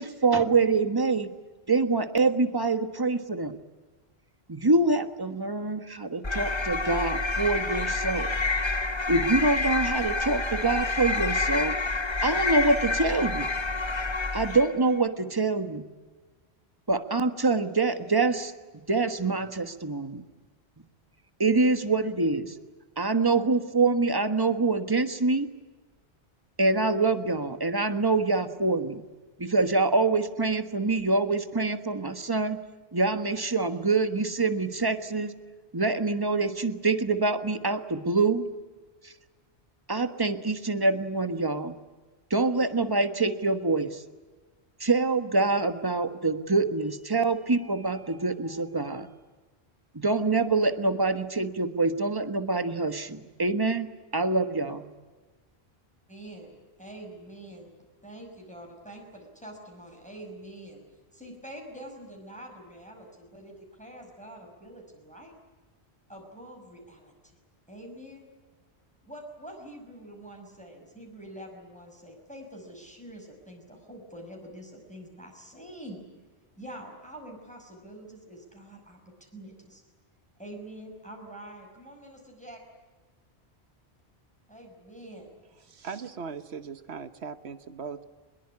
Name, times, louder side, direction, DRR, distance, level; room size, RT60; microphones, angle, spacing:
voice 1, 0.0-1.3 1.7-3.6 4.5-8.3 9.1-11.8 12.2-13.5 14.3-15.8 16.9-18.5 18.9-20.2 21.4-22.6 23.0-25.5 26.6-29.0 29.4-32.6 32.9-35.3 35.7-38.5 39.0-39.1 39.9-41.8 42.3-44.0 44.8-49.1 49.9-54.9, right 3 dB, 20° right, 9 dB, 1.4 m, -25 dB
sound 1, 6.2-14.8, left 3 dB, 25° left, 1.1 m, -28 dB
voice 2, 56.1-60.8 61.1-65.3 66.1-67.3 67.7-68.2 69.0-76.0 76.5-79.8 80.4-82.6 84.5-85.3, right 1 dB, 5° left, 1 dB, 5.8 m, -45 dB
voice 3, 85.6-88.1, right 5 dB, 75° right, 11 dB, 1.3 m, -39 dB
23.0 x 22.0 x 9.8 m, 1.3 s
omnidirectional pair, 1.1 m